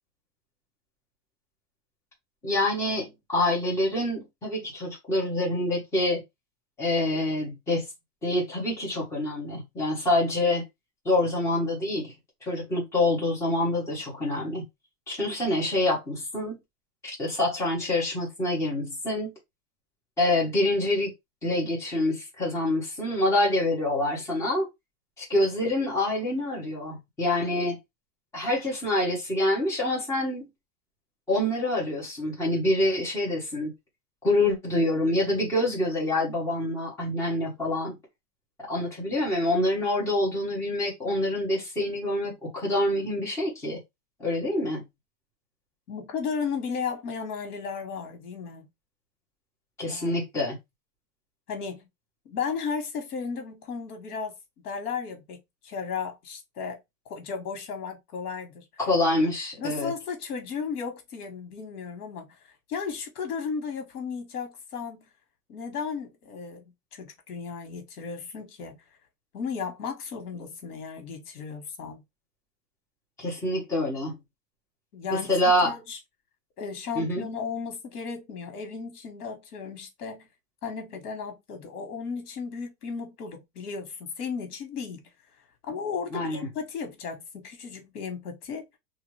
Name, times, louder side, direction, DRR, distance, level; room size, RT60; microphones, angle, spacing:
voice 1, 2.4-6.2 6.8-7.8 8.2-10.6 11.0-12.1 12.4-14.6 15.1-16.6 17.0-19.3 20.2-21.1 21.4-24.7 25.2-27.8 28.3-30.5 31.3-33.7 34.2-38.0 38.6-43.8 44.2-44.8 49.8-50.6 58.8-59.9 73.2-74.2 75.1-75.7 76.9-77.2 86.1-86.5, left 1 dB, 5° left, 0.9 m, -26 dB
voice 2, 45.9-48.7 49.8-50.2 51.5-51.9 52.2-54.4 54.6-56.8 57.0-58.6 59.6-62.4 62.7-65.1 65.5-68.8 69.3-72.0 74.9-75.3 75.6-76.0 76.6-80.3 80.6-85.0 85.7-88.8, left 5 dB, 80° left, 1.2 m, -35 dB
2.8 x 2.4 x 3.1 m
supercardioid pair, 165°, 45 cm